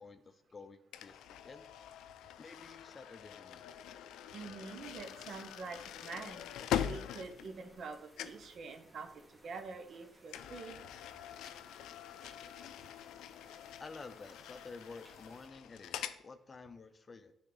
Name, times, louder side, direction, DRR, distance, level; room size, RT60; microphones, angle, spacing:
voice 1, 0.0-1.6 2.4-3.7 13.8-17.3, left 4 dB, 35° left, 11 dB, 0.5 m, -51 dB
sound 1, 0.9-7.9 8.2-8.5 10.3-16.2, left 10 dB, 85° left, 0.4 m, -43 dB
voice 2, 4.3-6.5 6.8-10.8, right 4 dB, 60° right, 8 dB, 0.9 m, -46 dB
sound 2, 4.8-15.5, equal, 5° right, 1.9 m, -63 dB
8.8 x 3.6 x 3.9 m, 0.81 s
cardioid pair, 90°, 0 cm